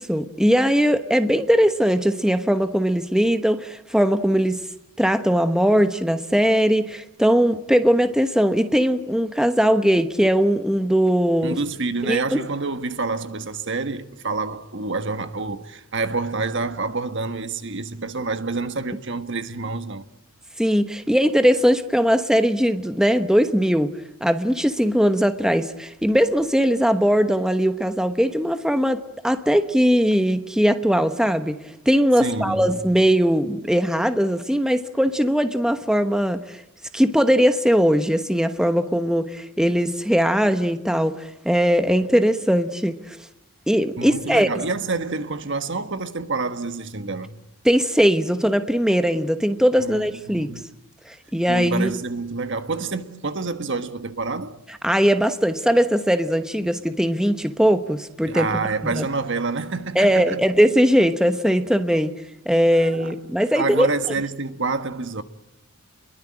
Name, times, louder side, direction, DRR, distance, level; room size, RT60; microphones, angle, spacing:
voice 1, 0.0-4.6 5.0-11.6 12.0-12.4 20.6-23.9 24.2-31.6 31.9-36.6 36.9-43.2 43.7-44.6 47.6-50.5 51.1-51.9 54.8-58.5 58.9-59.0 59.9-62.1 62.5-63.9, equal, 5° right, 1.1 m, -20 dB
voice 2, 11.4-20.0 32.2-32.7 44.0-47.4 49.8-50.7 51.5-54.6 58.3-60.4 62.7-63.1 63.5-65.2, right 3 dB, 55° right, 1.5 m, -28 dB
29.5 x 22.5 x 8.8 m
head